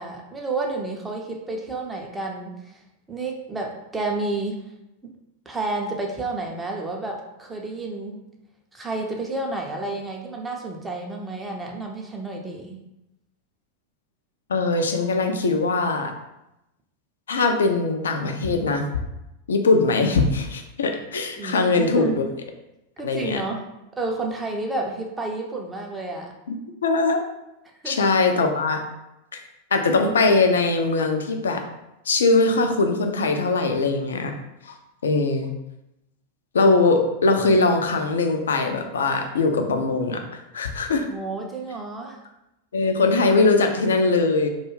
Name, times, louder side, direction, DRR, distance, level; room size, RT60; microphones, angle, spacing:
voice 1, 0.0-2.8 3.1-4.6 5.0-5.1 5.5-8.2 8.7-12.8 21.4-22.3 23.0-23.6 24.0-26.3 27.8-28.0 41.0-42.2, right 2 dB, 10° right, 0 dB, 0.5 m, -30 dB
voice 2, 14.5-16.1 17.3-18.9 19.5-22.2 23.0-23.4 26.5-27.2 27.9-28.8 29.3-29.4 29.7-31.6 32.1-34.3 34.6-34.7 35.0-35.5 36.5-41.1 42.7-44.5, left 3 dB, 65° left, 5 dB, 0.3 m, -21 dB
2.3 x 2.3 x 3.1 m, 0.89 s
figure-of-eight pair, 90°, 0 cm